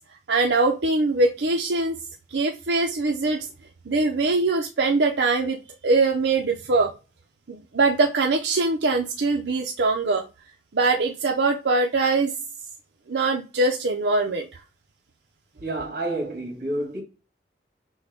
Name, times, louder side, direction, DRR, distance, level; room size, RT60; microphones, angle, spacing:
voice 1, 0.3-2.0 2.3-3.5 3.9-6.9 7.5-10.2 10.7-12.3 13.1-14.5, right 3 dB, 80° right, 0.6 m, -22 dB
voice 2, 15.6-17.0, right 1 dB, 55° right, 2.0 m, -29 dB
6.3 x 2.2 x 3.5 m
head